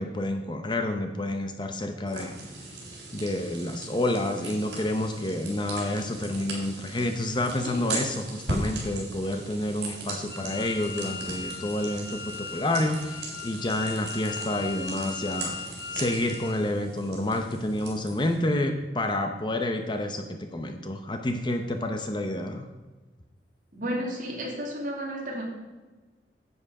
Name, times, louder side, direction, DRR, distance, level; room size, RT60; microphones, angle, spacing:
voice 1, 0.0-2.3 3.1-15.5 15.9-22.7, left 1 dB, 25° left, 6 dB, 0.7 m, -29 dB
sound 1, 2.1-18.4, right 2 dB, 75° right, 3.8 m, -38 dB
Wind instrument woodwind instrument, 10.3-16.6, left 5 dB, 60° left, 2.1 m, -39 dB
voice 2, 23.7-25.4, equal, 45° right, -1 dB, 2.6 m, -32 dB
10.0 x 8.2 x 4.8 m, 1.2 s
head